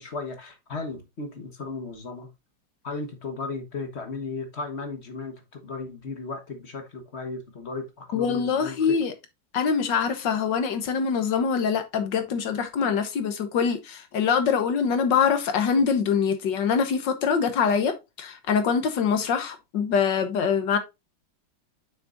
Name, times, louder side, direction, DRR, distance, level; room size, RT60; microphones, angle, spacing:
voice 1, 0.0-2.3 2.8-9.0, left 3 dB, 40° left, 1.4 m, -35 dB
voice 2, 8.1-9.1 9.5-20.8, left 6 dB, 70° left, 1.8 m, -24 dB
7.3 x 6.0 x 2.6 m
omnidirectional pair, 2.1 m